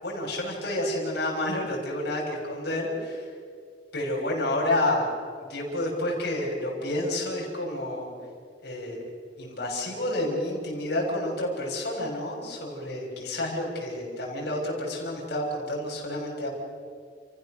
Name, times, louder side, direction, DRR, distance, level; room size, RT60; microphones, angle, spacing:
voice 1, 0.0-3.3 3.9-5.1 5.5-8.1 8.6-9.0 9.4-16.5, left 1 dB, 65° left, -2 dB, 6.5 m, -29 dB
30.0 x 15.5 x 6.6 m, 2.2 s
head